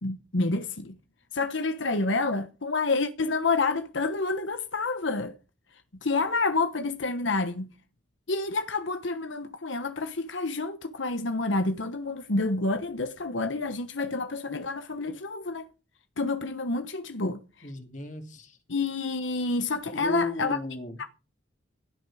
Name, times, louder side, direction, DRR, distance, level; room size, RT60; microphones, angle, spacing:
voice 1, 0.0-1.0 1.3-5.3 6.0-7.7 8.3-15.7 16.2-17.4 18.7-20.6 21.0-21.1, left 3 dB, 90° left, 1.2 m, -28 dB
voice 2, 17.6-18.6 19.9-21.0, equal, 40° left, 2.6 m, -34 dB
16.5 x 9.6 x 4.9 m
head